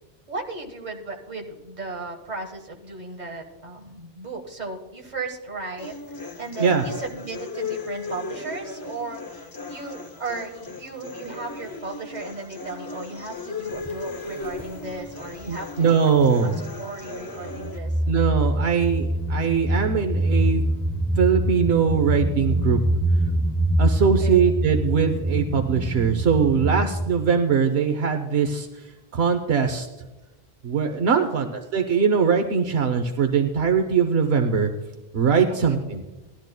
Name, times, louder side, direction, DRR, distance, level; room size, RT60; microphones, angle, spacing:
voice 1, 0.3-5.9 6.4-16.1 16.4-17.9 24.0-24.6 31.1-31.5 35.5-35.9, right 3 dB, 45° right, 1 dB, 1.5 m, -36 dB
sound 1, 5.8-17.8, left 3 dB, 25° left, 0.5 m, -36 dB
sound 2, 13.7-13.9 14.4-15.5 15.9-16.8 17.4-27.1, right 1 dB, ahead, 0.8 m, -25 dB
voice 2, 15.5-16.6 18.1-20.6 21.2-22.8 23.8-28.7 29.1-29.9 30.6-34.7 35.1-36.0, right 6 dB, 75° right, 5 dB, 1.0 m, -21 dB
18.0 x 12.0 x 2.2 m, 1.1 s
omnidirectional pair, 1.1 m